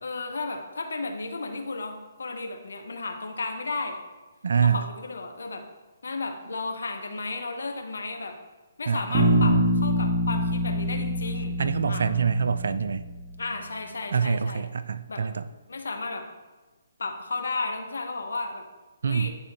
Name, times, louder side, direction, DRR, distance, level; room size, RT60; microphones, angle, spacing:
voice 1, 0.0-4.0 4.6-5.6 6.0-8.4 8.8-11.5 11.9-12.0 13.4-14.6 15.1-15.2 15.7-16.3 17.0-18.6 19.0-19.3, left 3 dB, 70° left, 5 dB, 0.8 m, -33 dB
voice 2, 4.4-4.8 8.9-9.7 11.6-13.0 14.1-15.5 19.0-19.3, right 6 dB, 65° right, 14 dB, 0.3 m, -25 dB
Bass guitar, 9.1-13.2, left 2 dB, 20° right, 1.5 m, -26 dB
9.7 x 3.5 x 3.0 m, 1.3 s
figure-of-eight pair, 135°, 0 cm